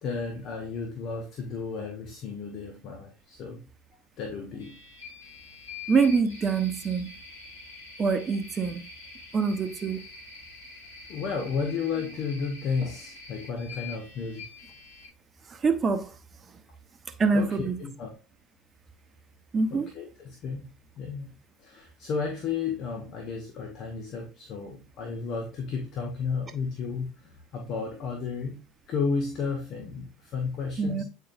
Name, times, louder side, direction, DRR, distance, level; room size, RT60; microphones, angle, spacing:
voice 1, 0.0-3.6 4.2-4.8 11.1-14.4 17.3-18.1 19.7-20.7 21.0-28.6 28.9-31.0, left 5 dB, 50° left, 1.1 m, -33 dB
sound 1, 4.6-15.1, left 4 dB, 85° left, 1.8 m, -45 dB
voice 2, 5.9-7.1 8.0-8.8 9.3-10.0 15.5-16.1 17.2-17.8 19.5-19.9 30.8-31.0, right 4 dB, 30° right, 0.9 m, -25 dB
8.6 x 4.6 x 2.5 m
hypercardioid pair, 75°, 0 cm